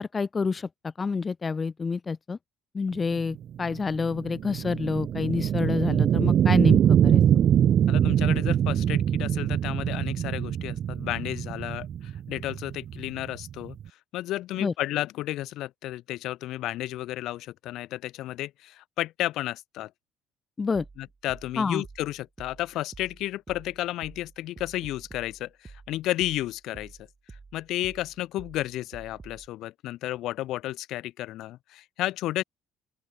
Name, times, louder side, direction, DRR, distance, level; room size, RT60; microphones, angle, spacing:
voice 1, 0.0-2.4 2.7-7.2 14.6-14.7 20.6-20.8 21.6-21.8, left 4 dB, 25° left, 0.5 m, -28 dB
sound 1, 3.2-13.9, right 9 dB, 50° right, 0.3 m, -23 dB
voice 2, 7.9-13.8 14.1-19.9 21.0-27.0 27.3-32.4, left 15 dB, 70° left, 2.2 m, -32 dB
sound 2, 20.7-29.5, right 4 dB, 25° right, 7.8 m, -49 dB
open air
cardioid pair, 100°, 0 cm